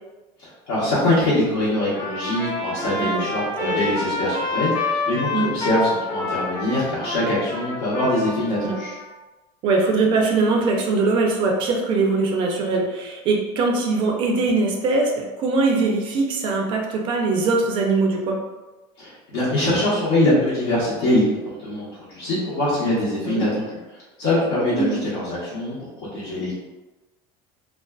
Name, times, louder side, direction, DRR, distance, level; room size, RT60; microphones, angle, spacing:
voice 1, 0.7-9.0 19.0-26.5, left 1 dB, 80° left, -9 dB, 0.9 m, -23 dB
Trumpet, 1.9-9.0, left 2 dB, 30° left, 0.6 m, -28 dB
voice 2, 3.0-3.3 3.6-3.8 5.3-5.5 8.6-8.8 9.6-18.4 23.2-23.5 24.7-25.0, right 3 dB, 40° right, 1 dB, 0.3 m, -21 dB
2.4 x 2.2 x 2.2 m, 1.1 s
cardioid pair, 170°, 14 cm